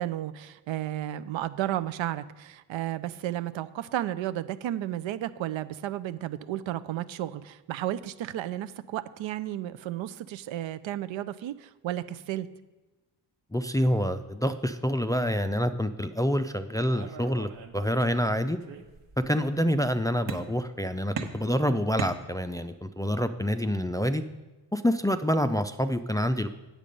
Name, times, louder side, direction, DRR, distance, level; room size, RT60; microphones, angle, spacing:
voice 1, 0.0-12.5, right 13 dB, 80° right, 14 dB, 0.6 m, -33 dB
voice 2, 13.5-18.6 19.3-24.2 24.7-26.5, equal, 10° left, 9 dB, 0.3 m, -27 dB
sound 1, 16.9-18.3 18.6-19.3 20.3-20.8 21.2-22.8, right 6 dB, 65° right, 1.2 m, -39 dB
8.5 x 7.4 x 5.3 m, 1.2 s
cardioid pair, 85°, 45 cm